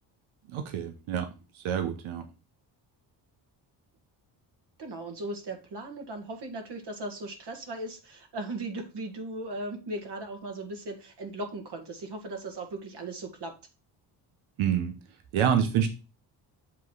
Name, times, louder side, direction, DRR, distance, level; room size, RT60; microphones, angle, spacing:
voice 1, 0.5-1.3 1.5-2.2 14.6-14.9 15.3-15.9, right 8 dB, 80° right, 7 dB, 1.0 m, -27 dB
voice 2, 4.8-13.5, right 2 dB, 55° right, 3 dB, 1.9 m, -37 dB
7.4 x 3.2 x 5.5 m, 0.31 s
supercardioid pair, 60°, 47 cm